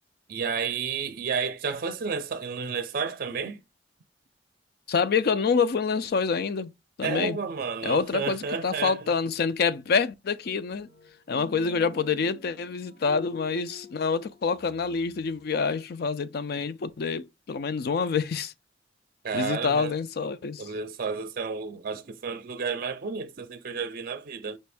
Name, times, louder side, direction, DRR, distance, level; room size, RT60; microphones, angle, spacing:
voice 1, 0.3-3.6 7.0-9.1 19.2-19.9 20.6-24.6, right 5 dB, 50° right, 0.5 m, -31 dB
voice 2, 4.9-6.7 7.0-7.4 7.8-10.9 11.3-18.5 19.3-20.7, left 5 dB, 60° left, 0.4 m, -27 dB
sound 1, 10.4-15.4, left 5 dB, 90° left, 2.2 m, -47 dB
5.3 x 2.5 x 3.3 m
head